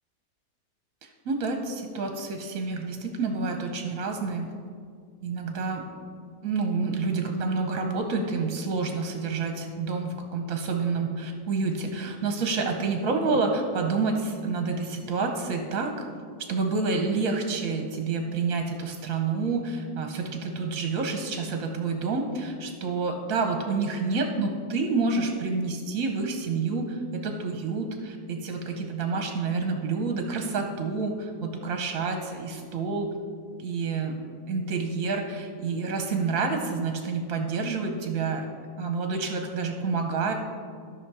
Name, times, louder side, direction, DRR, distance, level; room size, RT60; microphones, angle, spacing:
voice 1, 1.2-4.5 5.2-5.8 6.4-16.1 16.5-33.1 33.6-38.5 38.8-40.3, right 4 dB, 60° right, 4 dB, 1.2 m, -28 dB
13.0 x 5.9 x 4.7 m, 2.1 s
omnidirectional pair, 1.8 m